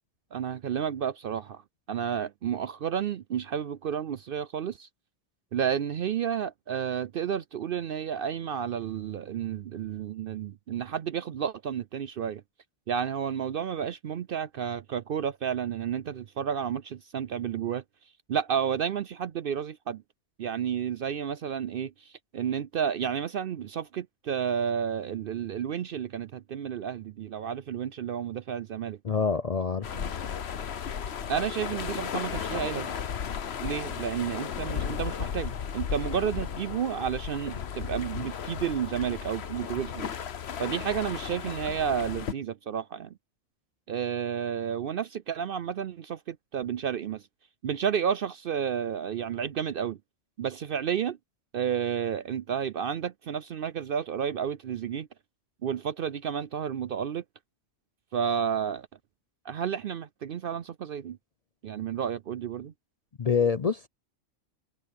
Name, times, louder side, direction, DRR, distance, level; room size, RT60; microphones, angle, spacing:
voice 1, 0.3-1.6 1.9-4.9 5.5-12.4 12.9-17.8 18.3-20.0 20.4-29.0 29.9-30.1 31.3-32.9 33.6-40.1 40.6-43.1 43.9-47.2 47.6-50.0 50.4-51.2 51.5-55.1 55.6-57.2 58.1-58.9 59.4-61.2 61.6-62.7, right 8 dB, 60° right, 0.6 m, -31 dB
voice 2, 29.0-30.0 63.2-63.9, left 6 dB, 40° left, 0.5 m, -26 dB
sound 1, 29.8-42.3, left 7 dB, 60° left, 1.2 m, -35 dB
omnidirectional pair, 1.3 m